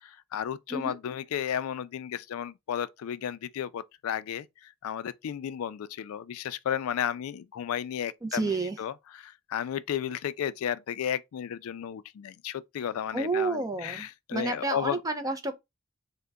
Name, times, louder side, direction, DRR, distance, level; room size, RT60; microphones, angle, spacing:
voice 1, 0.0-15.0, left 9 dB, 80° left, 0.3 m, -33 dB
voice 2, 8.2-8.8 13.1-14.1 14.3-15.5, right 3 dB, 15° right, 0.5 m, -30 dB
3.7 x 2.1 x 3.4 m
head